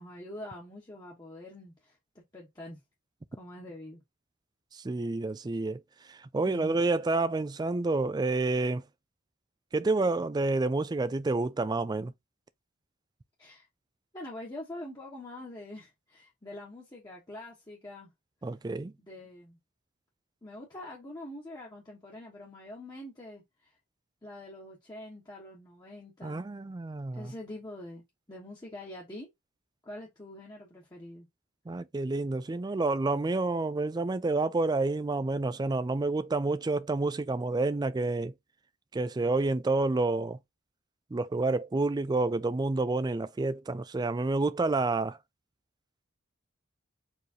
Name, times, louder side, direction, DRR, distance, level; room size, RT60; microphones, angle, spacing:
voice 1, 0.0-2.0 2.3-2.8 3.3-4.0 6.4-6.8 13.4-13.7 14.1-18.1 19.0-19.6 20.4-23.7 24.2-26.5 27.1-28.0 28.3-29.3 29.8-31.3, left 1 dB, 15° left, 1.1 m, -45 dB
voice 2, 4.7-5.8 6.1-8.8 9.7-12.1 18.4-18.9 26.2-27.3 31.7-38.3 38.9-40.4 41.1-45.2, right 3 dB, 20° right, 0.3 m, -29 dB
4.6 x 3.2 x 2.8 m
head